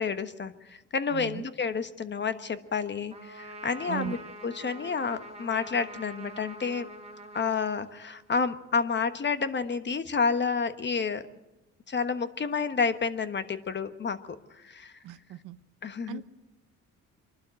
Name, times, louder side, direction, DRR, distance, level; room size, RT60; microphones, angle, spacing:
voice 1, 0.0-4.2 4.4-6.9 7.3-11.3 11.9-14.2 14.5-14.9 15.8-16.2, left 5 dB, 35° left, 11 dB, 1.3 m, -30 dB
voice 2, 1.1-1.5 3.9-4.2 15.0-15.6 16.1-16.3, right 12 dB, 85° right, 13 dB, 0.9 m, -37 dB
Trumpet, 3.1-8.4, right 1 dB, 20° right, 2.1 m, -45 dB
24.5 x 12.0 x 8.9 m, 1.0 s
cardioid pair, 90°, 30 cm